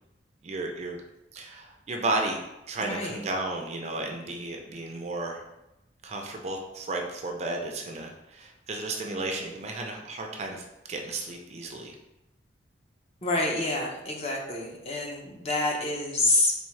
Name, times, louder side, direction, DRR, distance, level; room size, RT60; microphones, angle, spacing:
voice 1, 0.4-1.0 1.3-2.4 2.7-5.4 6.0-12.0, right 2 dB, 35° right, 2 dB, 0.4 m, -33 dB
voice 2, 2.8-3.2 13.2-16.5, left 2 dB, 35° left, -1 dB, 0.6 m, -27 dB
3.5 x 3.5 x 3.2 m, 0.94 s
head